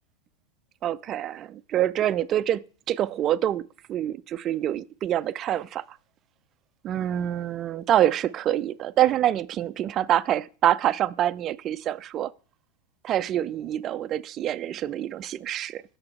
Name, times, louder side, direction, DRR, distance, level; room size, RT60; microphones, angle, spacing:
voice 1, 0.8-3.6 3.9-6.0 6.8-12.3 13.0-15.8, right 11 dB, 30° right, 0.3 m, -26 dB
7.0 x 6.0 x 4.5 m
figure-of-eight pair, 90°, 0 cm